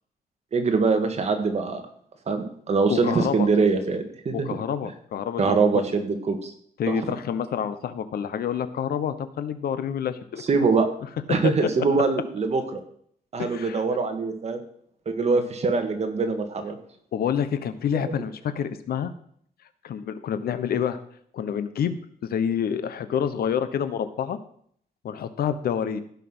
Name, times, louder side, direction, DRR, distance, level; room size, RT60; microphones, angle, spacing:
voice 1, 0.5-1.8 2.3-4.5 5.4-6.5 6.9-7.1 10.4-10.9 11.3-12.8 13.3-14.6 15.1-16.8 18.1-18.2, right 4 dB, 45° right, 6 dB, 1.9 m, -23 dB
voice 2, 2.9-3.5 4.3-5.6 6.8-10.4 13.4-13.8 17.1-19.1 19.8-21.0 21.3-22.0 22.3-24.4 25.0-26.0, left 8 dB, 90° left, 12 dB, 1.0 m, -28 dB
15.5 x 5.8 x 6.2 m, 0.63 s
wide cardioid pair, 145°, 15 cm